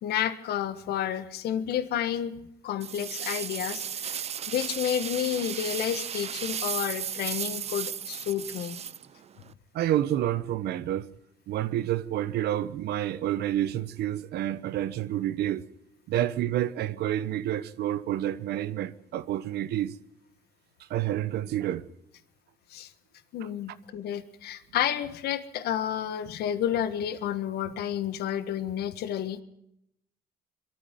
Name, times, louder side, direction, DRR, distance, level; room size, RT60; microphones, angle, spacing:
voice 1, 0.0-2.3 2.6-8.8 22.7-22.9 23.3-29.4, left 10 dB, 70° left, 1.6 m, -30 dB
sound 1, 2.8-9.5, right 8 dB, 40° right, 0.7 m, -35 dB
voice 2, 9.7-11.1 11.5-15.6 16.1-20.0 20.9-21.8 23.4-23.5, right 12 dB, 75° right, 1.1 m, -29 dB
22.5 x 14.0 x 9.2 m
cardioid pair, 110°, 17 cm